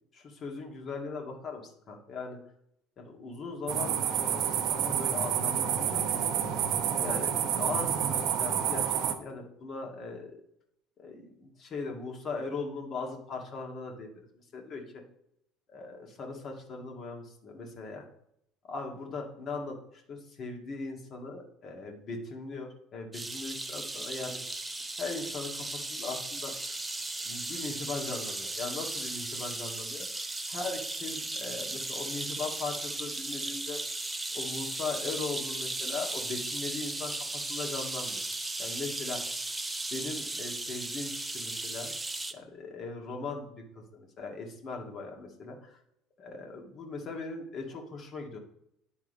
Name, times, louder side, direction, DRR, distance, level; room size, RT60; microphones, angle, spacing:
voice 1, 0.1-2.4 3.0-4.4 4.7-10.4 11.0-14.3 14.5-15.0 15.7-18.1 18.7-24.4 25.0-26.8 27.3-30.1 30.5-33.8 34.3-38.2 38.6-39.2 39.9-41.9 42.3-45.8 46.2-48.4, left 3 dB, 45° left, 2 dB, 1.8 m, -39 dB
sound 1, 3.7-9.1, right 8 dB, 65° right, 0.9 m, -29 dB
sound 2, 23.1-42.3, right 2 dB, 10° right, 0.7 m, -36 dB
9.5 x 3.6 x 5.1 m, 0.75 s
supercardioid pair, 80°, 0 cm